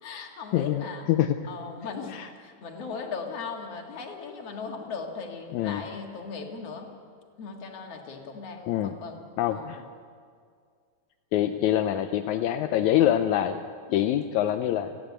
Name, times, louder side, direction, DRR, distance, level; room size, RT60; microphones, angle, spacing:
voice 1, 0.0-1.1 1.4-6.9 7.4-9.8 13.9-14.0, left 5 dB, 50° left, 2 dB, 2.7 m, -38 dB
voice 2, 0.5-1.4 2.1-2.3 5.5-5.8 8.7-8.9 9.4-9.8 11.3-13.6 13.9-14.9, left 12 dB, 75° left, 7 dB, 1.8 m, -25 dB
29.5 x 10.5 x 9.5 m, 2.1 s
omnidirectional pair, 3.8 m